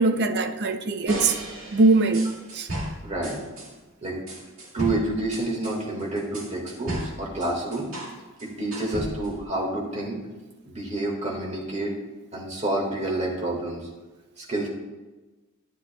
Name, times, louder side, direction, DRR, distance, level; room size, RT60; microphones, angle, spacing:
voice 1, 0.0-1.4 1.7-2.7, right 3 dB, 50° right, 0.5 m, -22 dB
sound 1, 1.1-3.7 4.3-8.1 8.4-9.4, right 1 dB, 75° right, 1.9 m, -34 dB
voice 2, 3.0-3.4 4.0-4.2 4.7-7.9 8.4-10.2 10.7-11.9 12.3-13.9 14.4-14.7, right 2 dB, 30° right, 1.7 m, -29 dB
10.0 x 9.7 x 2.2 m
head